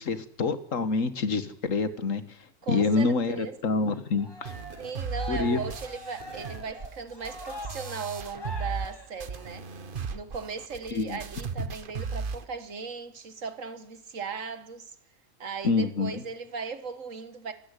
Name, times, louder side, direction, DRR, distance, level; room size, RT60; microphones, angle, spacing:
voice 1, 0.0-2.2 2.7-4.5 5.3-5.6 10.9-11.2 15.6-16.2, left 4 dB, 80° left, 1.9 m, -27 dB
voice 2, 2.6-3.5 4.8-9.7 10.1-15.0 15.4-17.5, right 5 dB, 75° right, 2.0 m, -37 dB
Cheering, 4.2-9.7, left 1 dB, 20° left, 3.1 m, -43 dB
sound 1, 4.4-8.9 9.2-12.4, right 5 dB, 45° right, 1.2 m, -36 dB
24.5 x 13.5 x 9.9 m
omnidirectional pair, 1.3 m